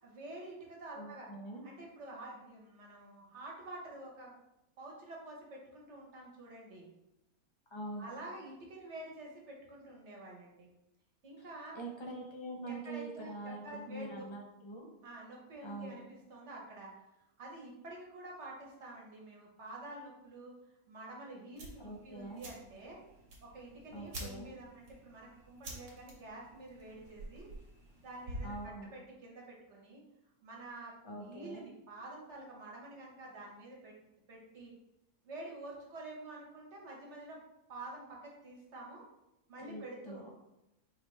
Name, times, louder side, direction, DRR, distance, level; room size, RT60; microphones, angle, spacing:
voice 1, 0.0-1.3 1.6-4.4 4.8-6.9 8.0-10.7 11.2-11.8 12.6-14.2 15.0-17.0 17.4-20.5 20.9-23.0 23.4-27.5 28.0-30.0 30.4-33.9 34.3-34.7 35.2-37.4 37.7-39.1 39.5-40.3, right 2 dB, 55° right, -2 dB, 1.4 m, -48 dB
voice 2, 1.0-1.6 7.7-8.1 11.7-13.6 13.9-14.9 15.6-15.9 21.8-22.4 23.9-24.5 28.4-28.9 31.0-31.6 39.6-40.3, right 2 dB, 25° left, -1 dB, 0.6 m, -44 dB
sound 1, 21.6-28.7, right 1 dB, 85° right, 1.6 m, -49 dB
4.9 x 3.2 x 3.2 m, 0.90 s
omnidirectional pair, 1.5 m